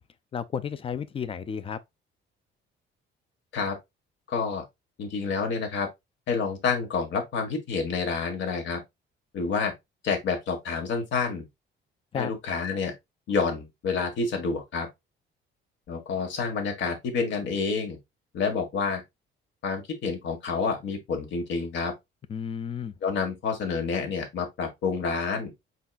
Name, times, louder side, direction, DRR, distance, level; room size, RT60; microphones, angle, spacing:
voice 1, 0.3-1.8 12.1-12.3 22.3-22.9, left 7 dB, 25° left, 0.4 m, -32 dB
voice 2, 4.3-4.6 5.0-5.9 6.3-8.8 9.3-9.7 10.0-11.5 12.1-12.9 13.3-14.9 15.9-18.0 18.3-19.0 19.6-21.9 23.0-25.5, left 5 dB, 65° left, 1.5 m, -28 dB
4.6 x 4.1 x 2.3 m
cardioid pair, 155°, 21 cm